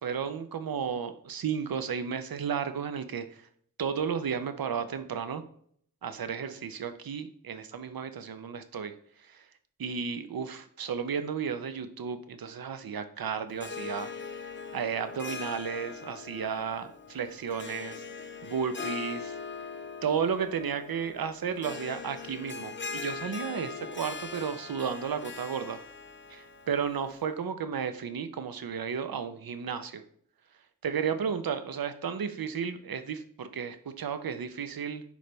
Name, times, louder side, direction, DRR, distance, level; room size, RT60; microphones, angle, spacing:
voice 1, 0.0-3.4 3.8-5.4 6.0-8.9 9.3-9.5 9.8-14.1 14.7-18.0 18.4-19.4 20.0-25.8 26.3-30.0 30.8-35.0, right 7 dB, 90° right, 10 dB, 0.7 m, -33 dB
Harp, 13.5-27.3, left 5 dB, 35° left, 0.6 m, -41 dB
9.9 x 3.3 x 3.9 m, 0.63 s
wide cardioid pair, 110°, 35 cm